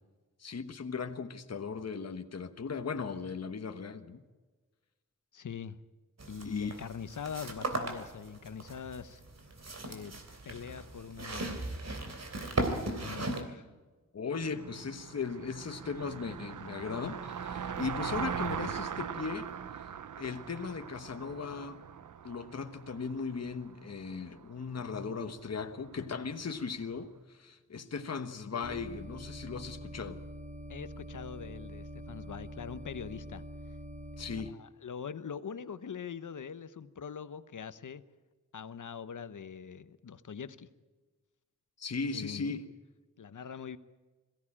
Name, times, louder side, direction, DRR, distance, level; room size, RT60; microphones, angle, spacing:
voice 1, 0.4-4.2 6.4-6.7 12.8-13.0 14.1-19.5 20.2-21.8 22.2-30.2 34.2-34.6 41.8-42.7, left 5 dB, 55° left, 8 dB, 1.2 m, -37 dB
voice 2, 5.3-5.8 6.3-9.2 9.8-11.6 13.0-13.7 30.7-33.4 34.5-38.0 38.5-40.7 42.1-42.6 43.2-43.8, left 7 dB, 75° left, 13 dB, 1.0 m, -43 dB
sound 1, 6.2-13.4, right 2 dB, 60° right, 3.1 m, -37 dB
Car passing by, 14.4-26.7, right 8 dB, 80° right, 0.7 m, -41 dB
sound 2, 28.6-34.5, equal, 25° right, 1.4 m, -45 dB
22.0 x 16.0 x 8.7 m, 1.3 s
wide cardioid pair, 95°, 31 cm